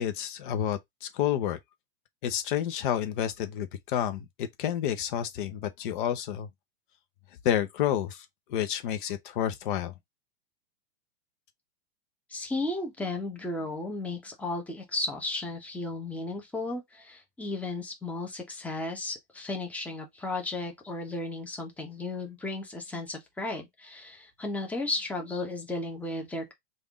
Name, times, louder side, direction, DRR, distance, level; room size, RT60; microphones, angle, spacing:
voice 1, 0.0-1.6 2.2-6.5 7.4-9.9, left 10 dB, 55° left, 0.8 m, -30 dB
voice 2, 12.3-26.5, left 2 dB, 5° left, 1.0 m, -34 dB
3.5 x 2.6 x 3.5 m
hypercardioid pair, 130°, 30 cm